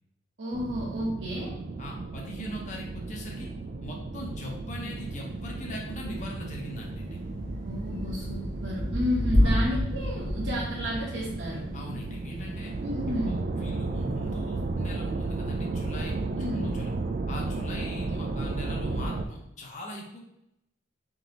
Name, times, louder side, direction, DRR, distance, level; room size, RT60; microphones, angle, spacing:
voice 1, 0.4-1.5 7.6-11.6 12.8-13.4 16.4-16.7, equal, 70° right, -6 dB, 1.1 m, -31 dB
sound 1, 0.5-19.2, right 3 dB, 45° right, 0.3 m, -34 dB
voice 2, 1.8-3.5 3.8-7.2 9.4-9.6 11.7-12.7 13.3-16.9 17.3-20.2, equal, 40° left, -1 dB, 0.8 m, -40 dB
Thunder / Rain, 4.9-13.2, left 1 dB, 60° left, 1.3 m, -31 dB
3.8 x 2.9 x 3.8 m, 0.82 s
head